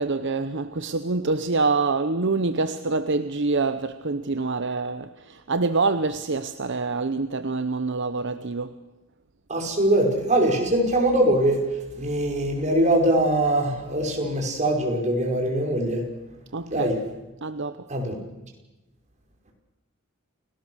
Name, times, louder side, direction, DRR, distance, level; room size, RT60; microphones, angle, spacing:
voice 1, 0.0-8.7 16.5-16.9 17.4-17.9, right 3 dB, 60° right, 0.9 m, -26 dB
voice 2, 9.5-16.1 16.7-17.0 17.9-18.2, right 1 dB, 35° right, 5.5 m, -22 dB
29.0 x 18.5 x 6.4 m
head